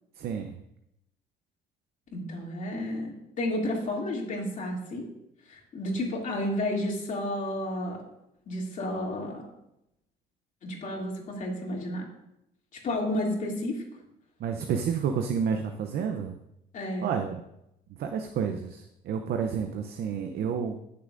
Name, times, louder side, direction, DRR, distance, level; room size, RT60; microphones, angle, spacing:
voice 1, 0.2-0.5 14.4-16.4 17.0-17.4 18.0-20.8, right 7 dB, 65° right, 5 dB, 0.7 m, -30 dB
voice 2, 2.1-5.1 5.5-8.0 8.5-9.5 10.6-12.0 12.8-13.8 16.7-17.1, left 1 dB, 50° left, -1 dB, 2.8 m, -31 dB
18.0 x 6.8 x 2.6 m, 0.83 s
cardioid pair, 110°, 17 cm